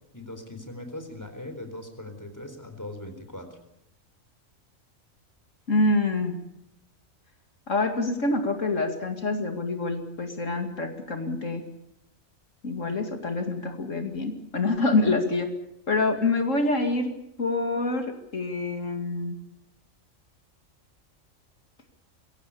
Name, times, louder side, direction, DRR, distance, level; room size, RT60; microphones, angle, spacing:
voice 1, 0.1-3.6, left 1 dB, 15° left, 7 dB, 4.0 m, -40 dB
voice 2, 5.7-6.3 7.7-11.6 12.6-15.5 15.9-17.1 17.4-19.4, left 2 dB, 70° left, 5 dB, 2.6 m, -26 dB
23.5 x 17.0 x 8.5 m, 0.83 s
omnidirectional pair, 1.4 m